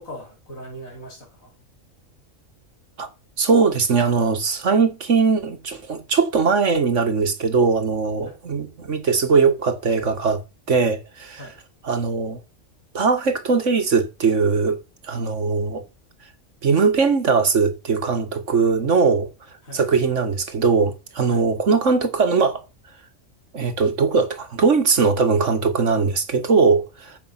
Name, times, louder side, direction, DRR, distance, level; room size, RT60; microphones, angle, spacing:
voice 1, 0.0-1.5 8.3-8.4 11.4-11.6 19.6-19.8 21.3-21.5, equal, 80° left, 5.4 m, -39 dB
voice 2, 3.4-10.4 10.7-11.4 11.8-12.4 12.9-15.8 16.6-19.3 19.7-22.6 23.5-27.2, right 5 dB, 65° right, 1.9 m, -20 dB
14.0 x 7.1 x 5.9 m
omnidirectional pair, 1.4 m